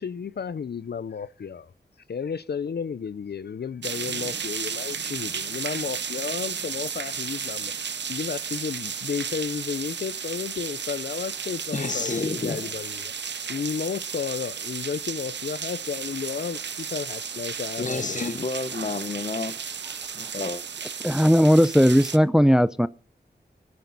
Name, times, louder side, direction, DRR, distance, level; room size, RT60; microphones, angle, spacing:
voice 1, 0.0-1.7 2.1-7.7 8.1-13.1 13.5-18.3, left 6 dB, 65° left, 0.5 m, -32 dB
sound 1, 3.8-22.2, right 6 dB, 80° right, 0.7 m, -33 dB
voice 2, 11.7-12.7 17.8-19.6 20.1-20.6, left 3 dB, 45° left, 0.9 m, -30 dB
voice 3, 21.0-22.9, equal, 5° right, 0.5 m, -17 dB
17.0 x 9.5 x 4.0 m
wide cardioid pair, 65°, 18 cm